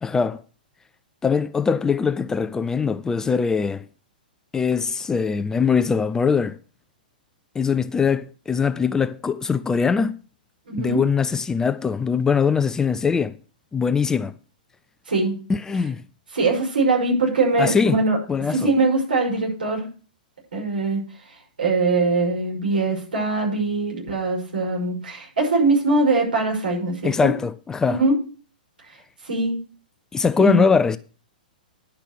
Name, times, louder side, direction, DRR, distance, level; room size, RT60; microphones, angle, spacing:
voice 1, 0.0-0.4 1.2-3.9 4.5-6.6 7.5-10.2 10.8-13.4 13.7-14.3 15.5-16.0 17.6-18.0 18.3-18.7 27.0-28.0 30.1-31.0, left 5 dB, 10° left, 0.4 m, -22 dB
voice 2, 10.7-11.0 15.1-15.4 16.3-18.2 18.5-19.9 20.5-21.0 21.6-27.3 27.9-28.2 29.2-29.6 30.4-30.6, right 3 dB, 75° right, 5.7 m, -22 dB
11.0 x 5.9 x 6.7 m
figure-of-eight pair, 110°, 5 cm